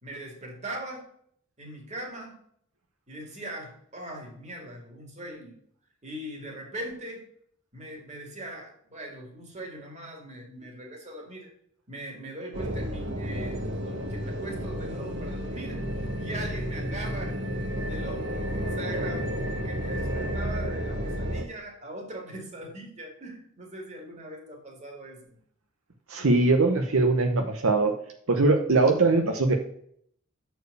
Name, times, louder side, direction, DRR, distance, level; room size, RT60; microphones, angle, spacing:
voice 1, 0.0-1.0 1.6-2.4 3.1-5.6 6.0-7.2 7.7-11.5 11.9-15.9 16.2-17.4 17.8-25.4, right 1 dB, 35° right, 1 dB, 2.2 m, -40 dB
sound 1, 12.5-21.4, equal, 60° right, 1.2 m, -31 dB
voice 2, 26.1-27.9 28.3-29.6, right 3 dB, 75° right, 4 dB, 0.9 m, -21 dB
6.8 x 4.5 x 6.5 m, 0.65 s
head